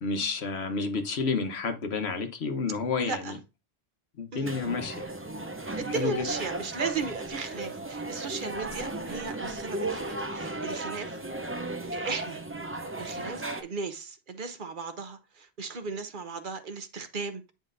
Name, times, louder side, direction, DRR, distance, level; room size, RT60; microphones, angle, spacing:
voice 1, 0.0-3.3 4.2-5.1 5.9-6.1, left 4 dB, 85° left, 1.3 m, -30 dB
voice 2, 3.0-3.4 4.3-4.5 5.8-11.2 11.9-12.4 13.0-17.5, right 5 dB, 55° right, 1.0 m, -36 dB
sound 1, 4.4-13.6, right 2 dB, 15° right, 0.5 m, -35 dB
9.3 x 5.1 x 2.6 m
omnidirectional pair, 1.1 m